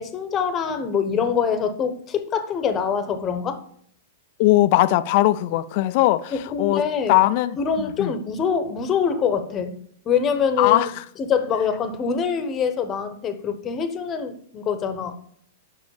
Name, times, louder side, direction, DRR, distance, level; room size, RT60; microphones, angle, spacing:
voice 1, 0.0-3.6 6.3-7.2 7.6-9.8 10.0-10.9 11.2-15.2, left 6 dB, 25° left, 1.0 m, -24 dB
voice 2, 4.4-6.8 7.1-8.1 10.6-10.9, left 16 dB, 50° left, 0.5 m, -20 dB
5.7 x 5.3 x 6.5 m
hypercardioid pair, 130°, 0 cm